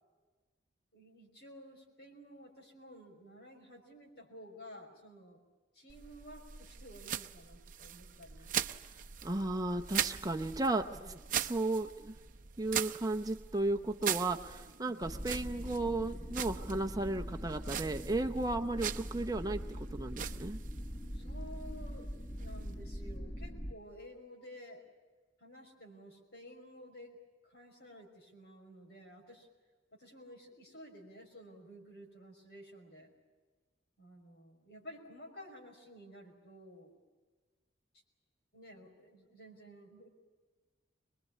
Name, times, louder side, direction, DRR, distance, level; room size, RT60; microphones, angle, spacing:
voice 1, 0.9-5.4 5.7-8.5 14.8-15.1 21.1-22.1 22.4-24.8 25.4-27.2 27.4-29.5 29.9-33.1 34.0-37.0 37.9-38.0 38.5-40.1, equal, 60° left, 2 dB, 5.7 m, -53 dB
sound 1, 5.9-23.2, right 9 dB, 45° right, 0.7 m, -41 dB
voice 2, 9.2-12.1 12.6-20.6, right 2 dB, 20° right, 6 dB, 0.9 m, -34 dB
sound 2, 15.0-23.8, equal, 15° left, 0.9 m, -42 dB
24.5 x 21.5 x 8.5 m, 1.3 s
head